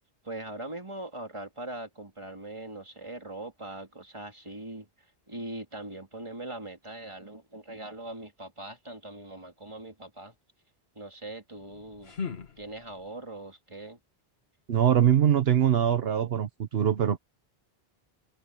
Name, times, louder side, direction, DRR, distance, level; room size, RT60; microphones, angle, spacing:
voice 1, 0.2-4.9 5.3-10.3 10.9-12.1 12.6-14.0, right 2 dB, 30° right, 3.1 m, -41 dB
sound 1, 11.5-13.2, left 5 dB, 80° left, 1.8 m, -40 dB
voice 2, 14.7-17.2, right 9 dB, 75° right, 1.1 m, -23 dB
omnidirectional pair, 1.0 m